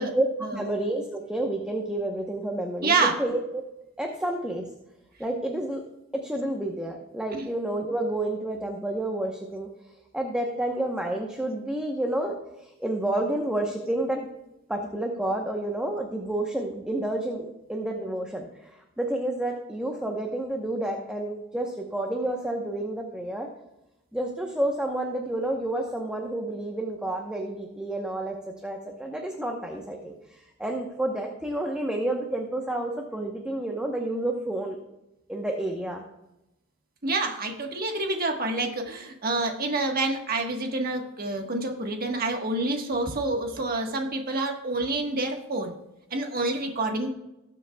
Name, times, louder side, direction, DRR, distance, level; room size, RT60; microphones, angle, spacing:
voice 1, 0.0-3.6 4.0-4.7 5.2-5.8 6.1-9.7 10.1-14.3 14.7-23.5 24.1-30.1 30.6-34.8 35.3-36.0, right 1 dB, 5° right, 1 dB, 0.9 m, -30 dB
voice 2, 2.8-3.1 7.3-7.4 37.0-45.7 46.1-47.1, right 2 dB, 45° right, 3 dB, 1.4 m, -27 dB
19.0 x 7.6 x 2.3 m, 0.91 s
head